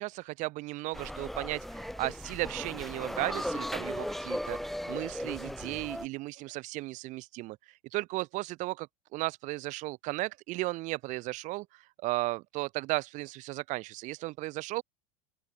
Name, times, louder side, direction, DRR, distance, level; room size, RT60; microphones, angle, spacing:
voice 1, 0.0-4.6 4.9-7.6 7.9-14.8, right 20 dB, 45° right, 5.5 m, -35 dB
sound 1, 0.9-6.1, equal, ahead, 2.6 m, -37 dB
open air
supercardioid pair, 145°, 17 cm